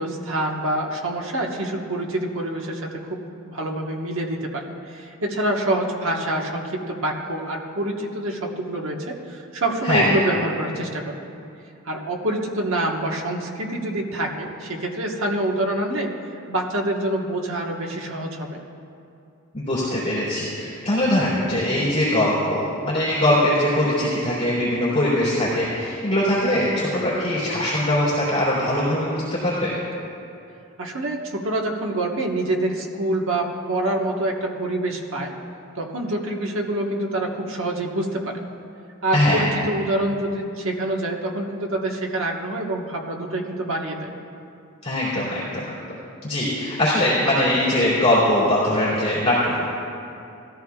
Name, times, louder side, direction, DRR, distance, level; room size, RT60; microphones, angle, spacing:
voice 1, 0.0-11.3 11.8-16.1 16.5-18.6 30.8-35.3 35.8-38.4 39.0-44.1, right 1 dB, 60° right, 0 dB, 1.4 m, -26 dB
voice 2, 9.8-10.2 19.5-29.7 39.1-39.4 44.8-45.8 46.2-49.7, left 1 dB, 25° left, -10 dB, 3.3 m, -21 dB
19.5 x 14.0 x 2.4 m, 2.6 s
head